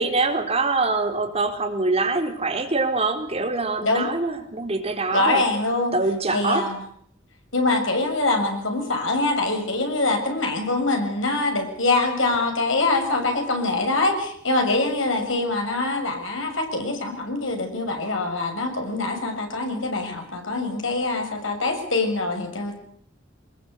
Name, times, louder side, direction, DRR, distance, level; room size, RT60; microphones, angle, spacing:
voice 1, 0.0-5.4 5.9-6.7, right 3 dB, 30° right, 3 dB, 4.3 m, -24 dB
voice 2, 5.1-5.9 6.3-6.8 7.5-22.8, left 2 dB, 75° left, 4 dB, 7.1 m, -24 dB
24.0 x 21.0 x 8.2 m, 0.65 s
head